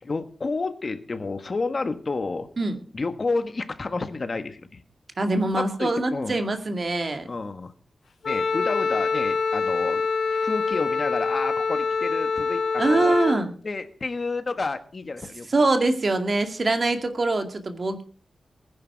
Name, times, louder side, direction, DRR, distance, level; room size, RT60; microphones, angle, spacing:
voice 1, 0.0-2.5 2.9-4.8 5.5-6.3 7.2-7.7 8.2-13.2 13.6-15.9, left 3 dB, 40° left, 9 dB, 1.5 m, -30 dB
voice 2, 5.2-7.3 12.8-13.5 15.5-18.0, right 2 dB, 40° right, 6 dB, 2.2 m, -23 dB
Wind instrument woodwind instrument, 8.2-13.4, left 4 dB, 80° left, 1.8 m, -25 dB
20.5 x 10.5 x 4.7 m, 0.41 s
wide cardioid pair, 130°, 0 cm